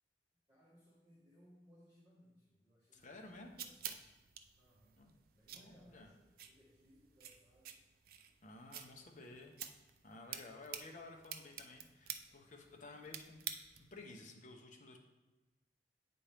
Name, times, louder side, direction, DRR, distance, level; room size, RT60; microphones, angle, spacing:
voice 1, 0.5-4.2 4.6-4.9 5.4-7.8 8.8-9.4, equal, 20° right, -9 dB, 1.4 m, -67 dB
voice 2, 2.9-3.5 5.0-5.1 5.5-6.1 8.4-9.6 10.0-13.4 13.8-15.0, left 2 dB, 40° left, 2 dB, 0.8 m, -54 dB
sound 1, 3.0-14.0, right 9 dB, 50° right, 0.4 m, -50 dB
8.6 x 4.3 x 3.4 m, 1.1 s
head